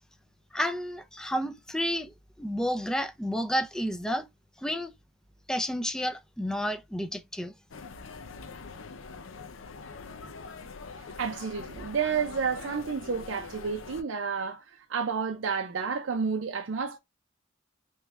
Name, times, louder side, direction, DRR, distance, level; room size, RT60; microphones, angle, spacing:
voice 1, 0.5-4.3 4.6-4.9 5.5-7.5, equal, 5° left, 0.4 m, -31 dB
sound 1, 7.7-14.0, left 4 dB, 90° left, 0.6 m, -43 dB
voice 2, 11.2-17.0, right 6 dB, 85° right, 0.5 m, -30 dB
3.5 x 3.1 x 3.3 m
head